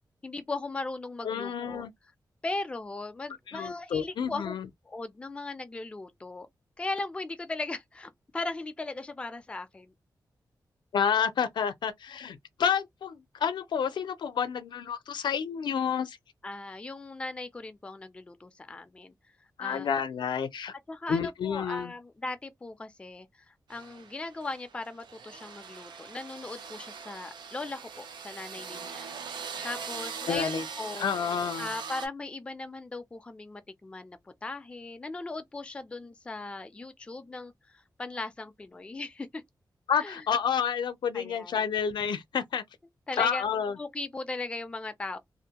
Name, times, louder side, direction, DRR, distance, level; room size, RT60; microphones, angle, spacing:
voice 1, 0.2-1.8 2.4-4.5 4.9-6.5 6.8-9.9 16.4-19.1 19.6-19.9 20.9-29.1 29.6-31.2 31.6-39.4 40.0-40.2 41.1-41.6 43.1-43.4 43.8-45.2, left 3 dB, 15° left, 0.3 m, -38 dB
voice 2, 1.2-1.9 3.5-4.7 10.9-16.2 19.6-20.7 21.1-21.9 30.3-30.6 31.0-31.7 39.9-42.6 43.2-43.8, left 7 dB, 85° left, 0.4 m, -29 dB
sound 1, 23.7-32.1, right 6 dB, 85° right, 0.6 m, -41 dB
2.5 x 2.1 x 2.8 m
wide cardioid pair, 175°, 8 cm